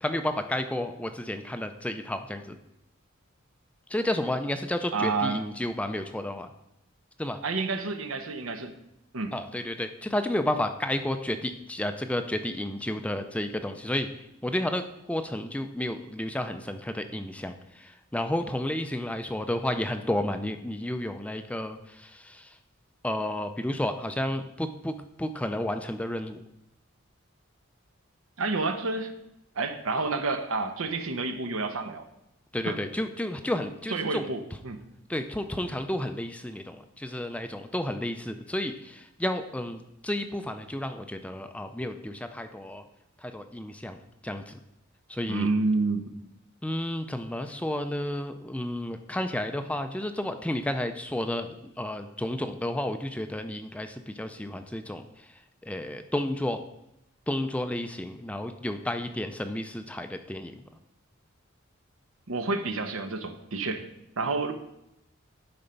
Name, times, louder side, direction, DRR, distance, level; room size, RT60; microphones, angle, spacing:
voice 1, 0.0-2.6 3.9-6.5 7.2-7.4 9.3-14.1 14.4-14.8 15.1-17.5 17.8-22.5 23.0-24.9 25.2-26.4 32.5-34.3 35.1-42.8 43.2-44.6 45.1-45.5 46.6-55.0 55.6-56.6 57.3-60.5, left 1 dB, 5° left, 8 dB, 0.4 m, -31 dB
voice 2, 4.9-5.4 7.4-8.7 9.1-9.4 28.4-29.1 29.5-32.1 32.6-32.8 33.9-34.8 45.3-46.1 62.3-63.9 64.2-64.5, right 3 dB, 75° right, 7 dB, 1.0 m, -29 dB
11.0 x 4.4 x 5.2 m, 0.83 s
head